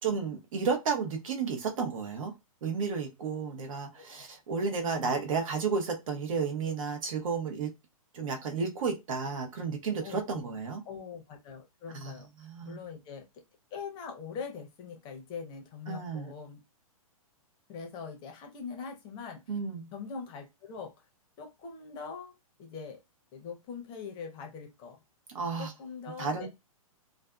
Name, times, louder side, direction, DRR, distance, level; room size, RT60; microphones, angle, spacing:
voice 1, 0.0-2.3 2.6-7.7 8.1-10.8 12.0-12.1 12.4-12.8 15.9-16.3 19.5-19.9 25.3-25.7 26.2-26.5, right 5 dB, 65° right, 0.9 m, -32 dB
voice 2, 3.9-4.2 4.8-5.2 10.0-10.6 10.8-13.2 13.7-16.6 17.7-19.4 19.9-21.0 21.4-22.3 22.6-23.0 23.3-25.0 25.6-26.5, left 6 dB, 25° left, 0.6 m, -42 dB
2.5 x 2.4 x 2.3 m
hypercardioid pair, 145°, 19 cm